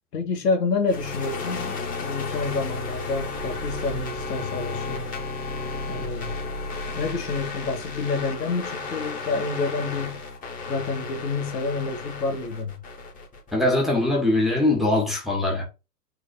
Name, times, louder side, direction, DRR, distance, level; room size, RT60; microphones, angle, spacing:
voice 1, 0.1-5.1 5.9-6.3 7.0-10.2 10.7-12.7, left 4 dB, 70° left, 2.6 m, -28 dB
sound 1, 0.9-13.7, left 3 dB, 15° left, 2.7 m, -33 dB
voice 2, 13.5-15.6, left 2 dB, ahead, 2.0 m, -22 dB
6.4 x 4.0 x 5.5 m
hypercardioid pair, 135°, 50 cm